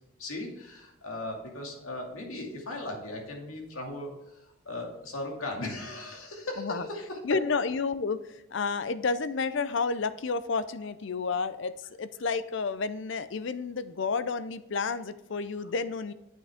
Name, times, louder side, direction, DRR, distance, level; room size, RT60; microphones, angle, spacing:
voice 1, 0.2-7.4, left 2 dB, 90° left, 0 dB, 2.4 m, -37 dB
voice 2, 7.2-16.1, left 4 dB, 60° left, 14 dB, 0.5 m, -31 dB
9.0 x 8.2 x 3.5 m, 0.93 s
head